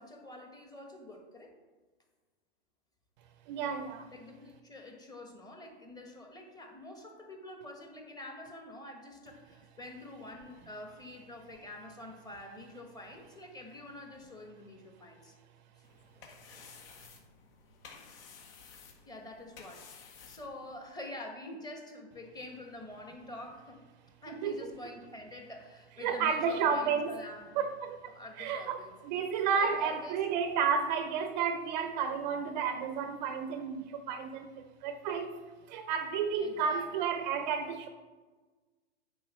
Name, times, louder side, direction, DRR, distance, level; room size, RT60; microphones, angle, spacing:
voice 1, 0.0-1.5 4.1-15.3 16.2-16.3 19.0-23.8 24.2-27.6 28.1-28.9 29.5-30.2 36.4-36.9, left 1 dB, 10° left, 1.4 m, -47 dB
voice 2, 3.5-4.1 24.3-24.7 26.0-27.1 27.6-37.9, right 6 dB, 40° right, 0.6 m, -32 dB
sound 1, 15.8-20.9, left 5 dB, 55° left, 1.7 m, -54 dB
8.4 x 5.0 x 6.2 m
hypercardioid pair, 125°, 34 cm